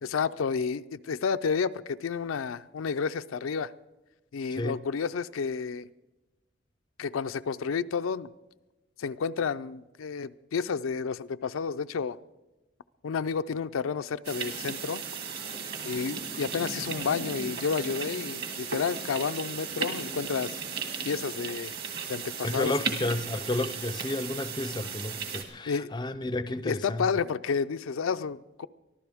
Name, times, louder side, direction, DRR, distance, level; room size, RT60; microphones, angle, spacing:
voice 1, 0.0-3.7 4.3-5.9 7.0-8.3 9.0-12.2 13.0-15.0 15.8-20.6 21.0-21.7 22.1-22.7 25.7-25.9 26.6-28.7, left 5 dB, 85° left, 0.4 m, -30 dB
sound 1, 14.2-25.4, right 5 dB, 50° right, 2.0 m, -36 dB
voice 2, 22.4-27.0, left 1 dB, 20° left, 0.5 m, -31 dB
23.5 x 14.5 x 3.5 m
head